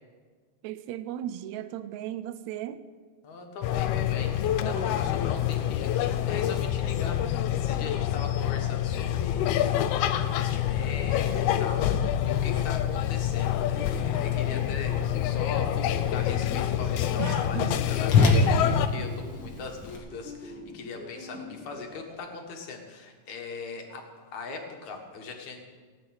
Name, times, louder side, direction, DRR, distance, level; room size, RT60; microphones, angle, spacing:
voice 1, 0.6-2.8 17.2-17.9, right 11 dB, 80° right, 1.8 m, -36 dB
voice 2, 3.2-9.9 10.3-25.6, left 4 dB, 65° left, 2.9 m, -40 dB
sound 1, 3.6-18.9, left 11 dB, 85° left, 1.4 m, -27 dB
Whoosh swoosh swish, 12.2-20.0, left 2 dB, 50° left, 2.2 m, -30 dB
sound 2, 13.7-22.1, left 1 dB, 5° right, 2.1 m, -43 dB
18.0 x 9.5 x 6.4 m
omnidirectional pair, 3.5 m